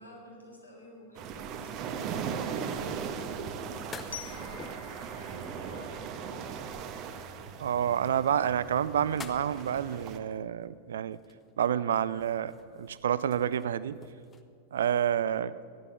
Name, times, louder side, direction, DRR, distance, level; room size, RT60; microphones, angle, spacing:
voice 1, 0.0-6.5, equal, 90° left, -2 dB, 3.6 m, -52 dB
sound 1, 1.1-10.2, right 6 dB, 40° right, 1.1 m, -38 dB
sound 2, 3.9-5.0 5.7-7.0 8.4-10.3 11.1-11.6 11.9-14.4, left 5 dB, 20° left, 0.9 m, -48 dB
Glockenspiel, 4.1-7.0, left 11 dB, 70° left, 0.5 m, -49 dB
voice 2, 7.6-11.2 11.6-14.0 14.7-15.6, right 9 dB, 65° right, 16 dB, 0.4 m, -29 dB
14.5 x 11.0 x 7.0 m, 2.3 s
figure-of-eight pair, 90°, 0 cm